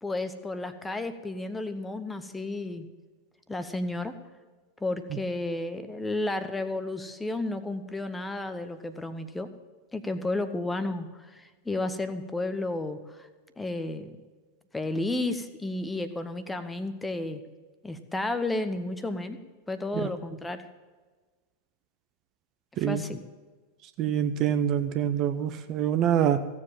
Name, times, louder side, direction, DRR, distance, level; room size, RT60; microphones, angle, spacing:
voice 1, 0.0-2.9 3.5-4.1 4.8-9.5 9.9-13.3 13.6-14.2 14.7-17.4 17.8-19.4 19.7-20.6 22.7-23.2, left 2 dB, 10° left, 10 dB, 1.0 m, -32 dB
voice 2, 24.0-26.5, right 9 dB, 35° right, 10 dB, 0.8 m, -25 dB
16.0 x 7.5 x 7.5 m, 1.4 s
figure-of-eight pair, 90°, 0 cm